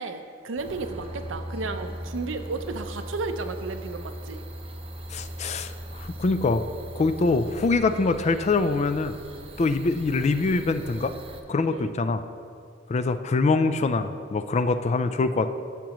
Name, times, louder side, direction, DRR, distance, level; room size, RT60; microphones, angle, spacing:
voice 1, 0.0-4.4 11.6-11.9, right 3 dB, 70° right, 8 dB, 0.6 m, -33 dB
sound 1, 0.6-11.4, equal, 30° right, 0.6 m, -39 dB
voice 2, 5.1-6.6 6.9-9.2 9.6-11.1 11.5-12.2 12.9-15.5, left 3 dB, 35° left, 10 dB, 0.4 m, -24 dB
13.5 x 7.3 x 3.0 m, 2.3 s
head